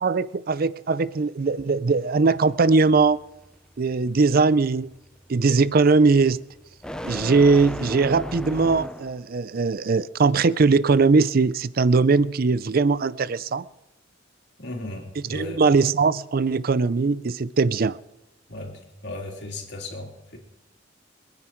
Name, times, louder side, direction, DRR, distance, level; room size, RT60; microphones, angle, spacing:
voice 1, 0.0-3.2 3.8-4.9 5.3-6.4 7.0-13.6 15.3-18.0, right 4 dB, 50° right, 18 dB, 0.5 m, -20 dB
sound 1, 2.3-9.3, equal, 5° left, 0.6 m, -37 dB
voice 2, 14.6-15.6 18.5-20.4, left 1 dB, 60° left, 1 dB, 3.7 m, -36 dB
27.5 x 9.7 x 4.5 m, 0.94 s
head